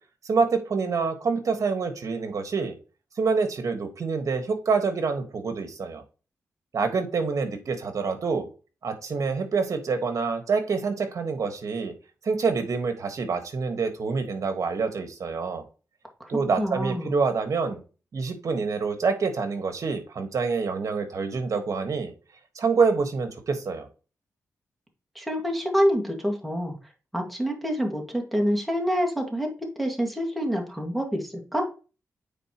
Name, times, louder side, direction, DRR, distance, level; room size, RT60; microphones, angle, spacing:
voice 1, 0.2-2.7 3.2-6.0 6.7-8.5 8.8-11.9 12.2-15.6 16.3-17.8 18.1-22.1 22.5-23.9, right 4 dB, 60° right, 7 dB, 1.5 m, -26 dB
voice 2, 16.6-17.2 25.2-26.7 27.1-31.7, equal, ahead, 2 dB, 1.9 m, -27 dB
9.1 x 4.1 x 3.0 m, 0.35 s
cardioid pair, 85°, 6 cm